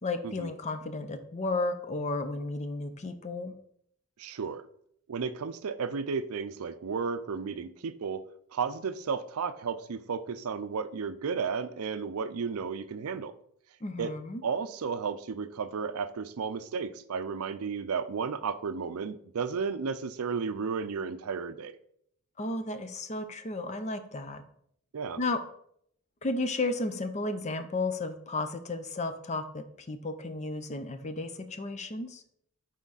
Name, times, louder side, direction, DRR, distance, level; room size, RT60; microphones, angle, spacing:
voice 1, 0.0-3.5 13.8-14.4 22.4-24.4 25.2-25.4 26.2-32.2, left 2 dB, 30° left, 8 dB, 0.6 m, -33 dB
voice 2, 4.2-4.6 5.1-8.2 8.5-13.4 14.0-14.1 14.4-21.7 24.9-25.2, right 5 dB, 80° right, 13 dB, 0.5 m, -33 dB
6.0 x 4.3 x 4.0 m, 0.68 s
head